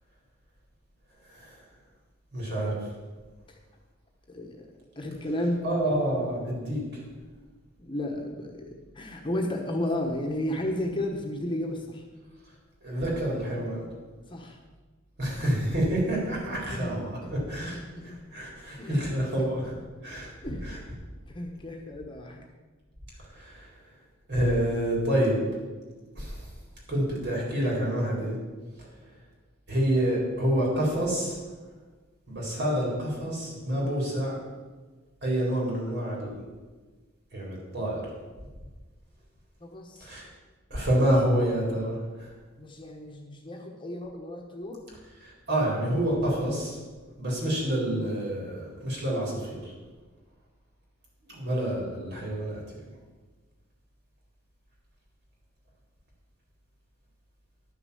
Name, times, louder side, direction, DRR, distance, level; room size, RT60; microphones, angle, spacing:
voice 1, 2.3-2.8 5.6-6.9 12.8-13.8 15.2-19.7 20.0-20.8 23.3-23.7 24.3-25.4 26.1-26.5 26.9-28.3 29.7-31.4 32.3-34.4 35.2-36.4 37.3-38.1 40.0-40.3 40.7-42.3 45.2-46.8 47.2-49.7 51.3-52.6, right 1 dB, 55° right, -4 dB, 4.4 m, -28 dB
voice 2, 4.3-4.7 5.0-5.6 7.8-12.0 14.3-14.6 16.7-17.3 17.7-18.2 18.8-19.5 20.4-20.7 21.3-22.4 39.6-40.1 40.7-41.1 42.6-44.8, left 1 dB, 25° left, 1 dB, 1.3 m, -33 dB
11.5 x 6.9 x 7.1 m, 1.3 s
head